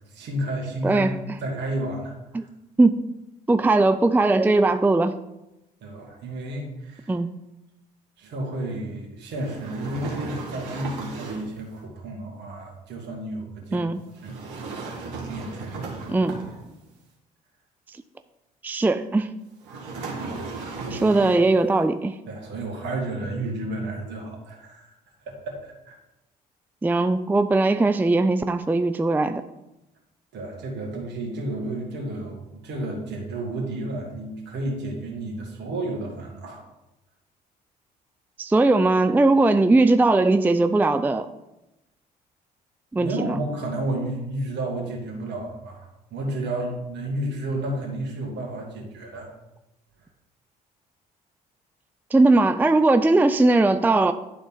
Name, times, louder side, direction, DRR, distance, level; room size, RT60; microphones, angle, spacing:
voice 1, 0.1-1.1 1.4-2.2 5.8-7.1 8.2-13.9 14.2-16.2 20.2-20.5 20.7-21.2 22.3-24.9 25.3-26.0 30.3-36.6 42.9-49.3, right 1 dB, 60° right, 0 dB, 2.3 m, -32 dB
voice 2, 0.8-1.1 2.3-2.4 2.8-3.0 3.5-5.1 7.1-7.3 13.7-14.0 16.1-16.4 18.6-19.3 20.9-22.2 26.8-29.4 38.4-41.3 42.9-43.4 52.1-54.1, right 2 dB, 10° right, 10 dB, 0.4 m, -19 dB
sound 1, 9.3-11.6 14.2-16.9 19.6-21.6, right 3 dB, 75° right, 1.7 m, -35 dB
11.5 x 3.9 x 3.9 m, 0.94 s
hypercardioid pair, 55°, 20 cm